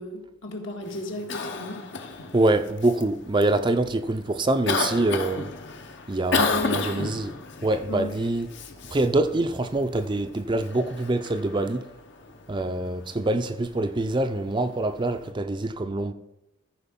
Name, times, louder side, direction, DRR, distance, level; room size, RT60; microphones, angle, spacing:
voice 1, 0.0-1.8 6.4-7.2 7.9-8.1, left 2 dB, 80° left, 2.1 m, -33 dB
Cough, 0.8-15.3, left 4 dB, 60° left, 1.0 m, -34 dB
voice 2, 2.3-5.5 6.1-7.3 7.6-8.5 8.9-11.9 12.5-16.1, right 2 dB, 25° right, 0.5 m, -25 dB
14.0 x 4.9 x 5.4 m
head